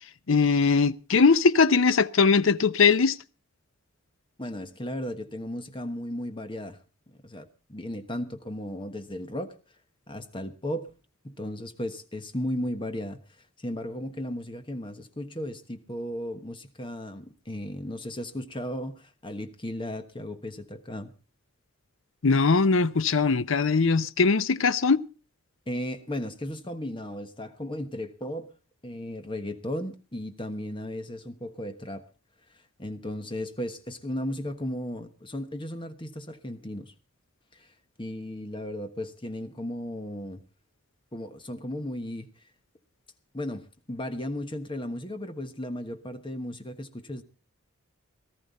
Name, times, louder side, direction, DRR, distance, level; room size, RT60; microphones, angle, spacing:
voice 1, 0.3-3.2 22.2-25.0, left 4 dB, 65° left, 0.6 m, -21 dB
voice 2, 4.4-6.8 7.2-9.5 10.1-10.9 11.2-13.2 13.6-21.1 25.7-28.5 28.8-32.1 32.8-36.9 37.5-37.7 38.0-40.4 41.1-42.3 43.3-47.2, left 1 dB, 25° left, 1.2 m, -35 dB
18.5 x 13.5 x 4.1 m
head